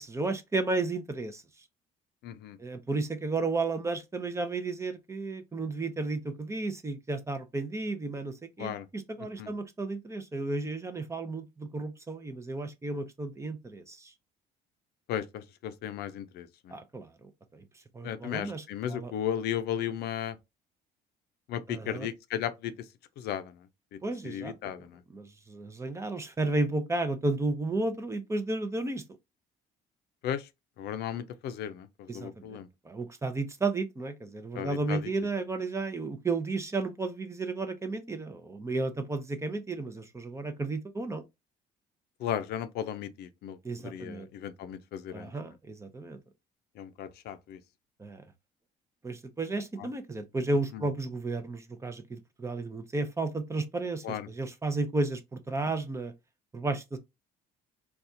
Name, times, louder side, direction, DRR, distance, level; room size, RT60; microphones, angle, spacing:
voice 1, 0.0-1.4 2.6-14.1 16.7-17.6 17.9-19.1 21.7-22.1 24.0-24.7 25.1-29.0 32.1-32.6 32.8-41.2 43.6-44.3 45.1-46.2 48.0-48.2 49.0-56.1 56.5-57.0, right 3 dB, 15° right, 0.6 m, -33 dB
voice 2, 2.2-2.6 8.6-8.9 9.4-9.5 15.1-16.7 18.0-20.4 21.5-22.7 23.2-23.6 23.9-24.0 24.2-25.0 30.2-30.5 30.8-32.7 34.5-35.1 42.2-45.3 46.8-47.6 49.8-49.9 50.7-50.9 54.0-54.3, left 9 dB, 75° left, 0.5 m, -35 dB
4.0 x 2.3 x 2.6 m
cardioid pair, 110°, 17 cm